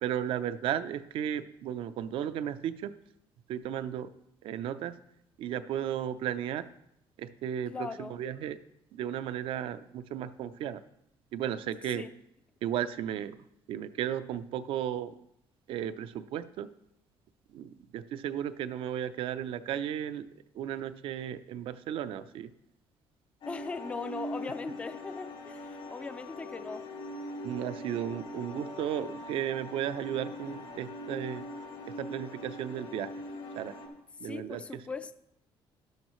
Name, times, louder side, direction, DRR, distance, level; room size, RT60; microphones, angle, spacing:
voice 1, 0.0-2.9 3.5-4.1 4.4-5.0 5.4-6.7 7.2-8.6 8.9-10.8 11.3-12.1 12.6-13.4 13.7-15.1 15.7-16.7 17.5-20.2 20.5-22.5 27.4-31.4 31.8-33.1 33.5-33.7 34.2-34.6, right 10 dB, 70° right, 0.6 m, -34 dB
voice 2, 7.7-8.2 11.9-12.1 23.5-26.9 34.2-35.1, left 4 dB, 15° left, 0.4 m, -39 dB
sound 1, 23.4-33.9, left 1 dB, 85° left, 3.6 m, -42 dB
12.0 x 12.0 x 3.1 m
cardioid pair, 160°, 10 cm